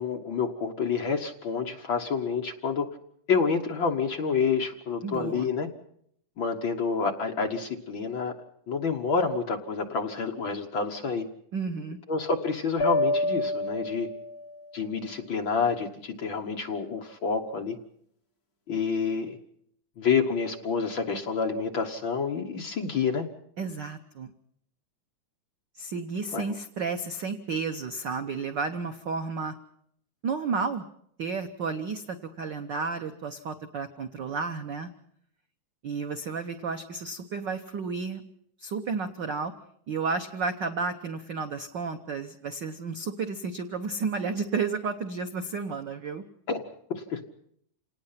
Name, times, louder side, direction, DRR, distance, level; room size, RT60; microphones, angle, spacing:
voice 1, 0.0-2.9 3.3-5.7 6.4-8.3 8.7-11.2 12.1-14.1 14.7-17.8 18.7-19.4 20.0-23.3 26.3-26.4 46.5-46.6 46.9-47.2, left 5 dB, 50° left, 4 dB, 1.7 m, -28 dB
voice 2, 5.0-5.5 11.5-12.0 23.6-24.3 25.8-29.5 30.2-30.9 31.2-34.9 35.8-38.2 38.6-39.5 39.9-46.2, right 4 dB, 75° right, 7 dB, 1.0 m, -32 dB
sound 1, 12.8-14.7, left 1 dB, 30° left, 2.8 m, -28 dB
28.0 x 19.0 x 5.8 m, 0.69 s
omnidirectional pair, 3.5 m